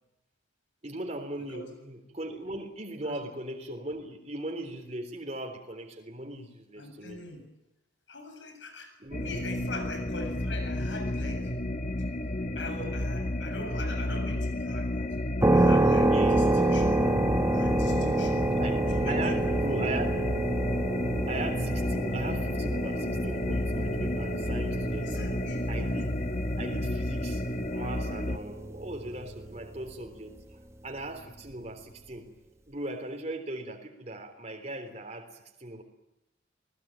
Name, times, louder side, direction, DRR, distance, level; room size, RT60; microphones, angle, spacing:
voice 1, 0.8-7.2 9.0-9.3 16.1-16.5 18.6-20.2 21.3-25.1 25.7-26.2 26.6-27.4 27.7-32.3 32.7-35.8, right 2 dB, 35° right, 3 dB, 3.6 m, -39 dB
voice 2, 6.8-7.5 8.1-11.5 11.9-12.1 12.6-15.2 15.5-17.0 17.5-18.5 18.9-19.6 25.0-25.7, left 2 dB, 85° left, 7 dB, 7.3 m, -42 dB
sound 1, 9.1-28.4, left 1 dB, 40° left, 1.2 m, -31 dB
sound 2, 15.4-30.1, right 2 dB, 15° right, 1.1 m, -28 dB
29.0 x 19.5 x 8.9 m, 0.91 s
head